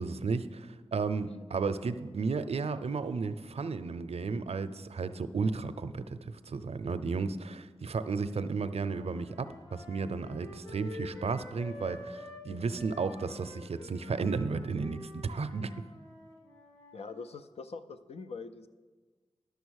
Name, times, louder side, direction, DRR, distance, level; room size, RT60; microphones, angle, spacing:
voice 1, 0.0-15.7, right 4 dB, 80° right, 12 dB, 0.5 m, -33 dB
sound 1, 8.6-12.4 12.7-17.1, left 2 dB, 45° left, 2.8 m, -48 dB
voice 2, 16.9-18.7, left 4 dB, 80° left, 10 dB, 0.5 m, -43 dB
11.0 x 6.8 x 6.3 m, 1.4 s
wide cardioid pair, 55°, 10 cm